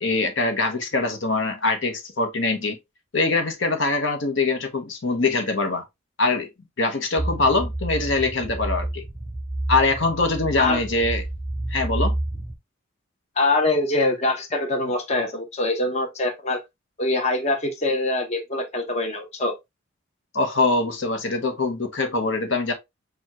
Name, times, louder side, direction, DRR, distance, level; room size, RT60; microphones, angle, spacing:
voice 1, 0.0-2.8 3.1-5.8 6.2-6.5 6.8-9.0 9.7-11.2 11.7-12.2 20.3-22.7, left 3 dB, 60° left, 1.0 m, -23 dB
sound 1, 7.2-12.5, right 1 dB, 10° right, 0.8 m, -29 dB
voice 2, 13.4-16.6 17.0-19.5, left 2 dB, 30° left, 0.9 m, -24 dB
6.9 x 2.3 x 2.9 m
head